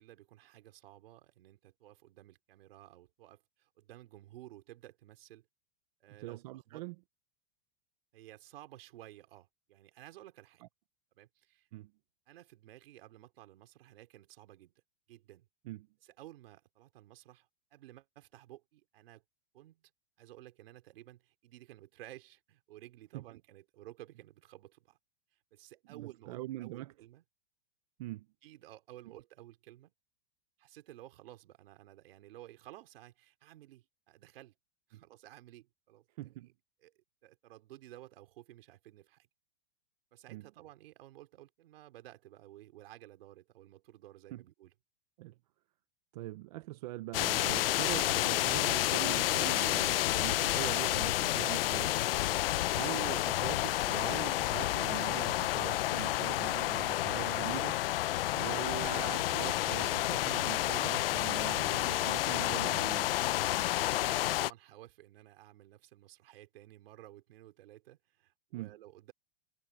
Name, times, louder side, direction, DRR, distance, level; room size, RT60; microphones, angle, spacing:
voice 1, 0.0-5.5 6.0-6.8 8.1-10.6 11.1-11.7 12.3-14.7 15.1-15.5 16.0-19.2 19.5-19.9 20.2-25.0 25.5-27.2 28.4-29.9 30.6-34.5 34.9-36.3 36.8-36.9 37.2-39.3 40.1-44.7 63.9-69.1, right 14 dB, 60° right, 5.1 m, -54 dB
voice 2, 6.2-6.9 11.7-11.9 15.7-15.9 23.1-23.2 25.9-26.9 28.0-28.3 34.9-35.0 36.2-36.5 40.3-40.5 44.3-44.4 45.2-45.3 46.1-52.0 52.7-57.8 58.3-63.1 68.5-68.7, right 17 dB, 35° right, 0.7 m, -42 dB
sound 1, 47.1-64.5, left 15 dB, 60° left, 0.7 m, -30 dB
supercardioid pair, 170°, 33 cm